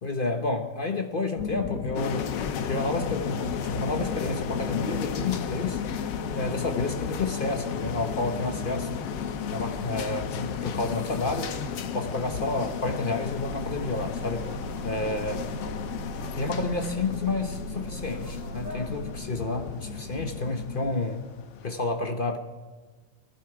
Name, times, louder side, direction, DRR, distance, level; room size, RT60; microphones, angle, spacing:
voice 1, 0.0-2.3 2.6-5.8 6.3-9.0 9.5-11.5 11.9-14.5 14.8-15.5 16.3-21.2 21.6-22.4, left 3 dB, 40° left, 0.9 m, -30 dB
sound 1, 1.4-21.0, left 6 dB, 55° left, 1.2 m, -36 dB
sound 2, 1.9-21.7, left 7 dB, 75° left, 1.5 m, -36 dB
sound 3, 13.2-19.1, right 1 dB, 80° right, 5.7 m, -39 dB
19.5 x 14.5 x 4.8 m
omnidirectional pair, 2.0 m